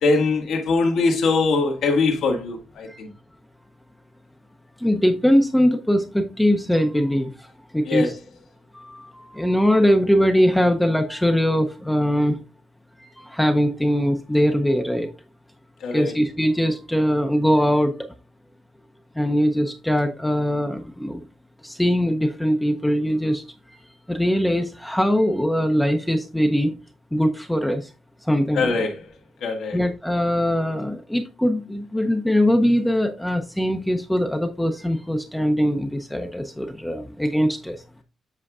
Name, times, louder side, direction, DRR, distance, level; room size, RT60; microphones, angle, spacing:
voice 1, 0.0-3.1 7.9-8.1 15.8-16.1 28.5-29.0 29.4-29.8, left 3 dB, 75° left, 1.5 m, -22 dB
voice 2, 4.8-7.3 7.7-8.1 8.8-12.4 13.2-15.1 15.9-17.9 19.2-21.2 21.6-23.4 24.1-26.7 27.1-27.8 28.3-28.8 29.7-37.7, equal, 5° left, 0.6 m, -21 dB
7.6 x 5.7 x 2.4 m
cardioid pair, 125°, 0 cm